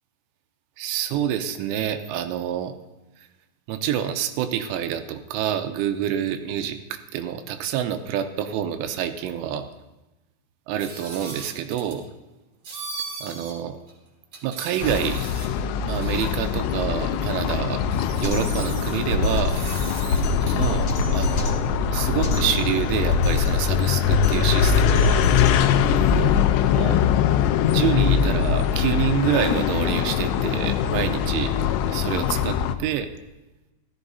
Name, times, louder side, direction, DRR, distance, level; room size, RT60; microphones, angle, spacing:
voice 1, 0.8-2.8 3.2-3.3 3.7-9.7 10.7-12.0 13.2-13.8 14.4-15.3 15.8-17.8 18.2-19.6 20.5-21.6 21.9-25.2 26.2-26.3 26.7-27.0 27.7-31.5 31.9-33.1, right 10 dB, 80° right, 8 dB, 3.0 m, -27 dB
sound 1, 10.8-12.0 12.6-13.5 13.9-14.0 14.3-15.6 16.0-16.3 17.4-17.5 17.8-19.0 19.5-20.6, right 4 dB, 45° right, 2.2 m, -38 dB
sound 2, 14.8-32.8, left 8 dB, 85° left, 3.1 m, -22 dB
Drum kit, 18.2-26.2, left 1 dB, 50° left, 2.4 m, -27 dB
16.5 x 13.5 x 2.7 m, 1.0 s
omnidirectional pair, 5.8 m